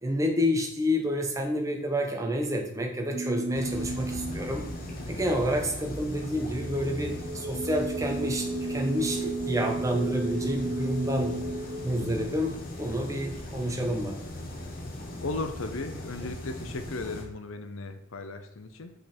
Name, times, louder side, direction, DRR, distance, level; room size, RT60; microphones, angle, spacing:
voice 1, 0.0-4.7 5.1-11.3 11.8-14.2, equal, 15° right, 2 dB, 1.0 m, -29 dB
sound 1, 3.1-12.9, right 2 dB, 45° right, 0.6 m, -35 dB
sound 2, 3.5-17.2, left 1 dB, 40° left, 1.2 m, -39 dB
voice 2, 15.2-18.9, left 2 dB, 65° left, 8 dB, 0.7 m, -36 dB
6.1 x 5.3 x 4.3 m, 0.86 s
head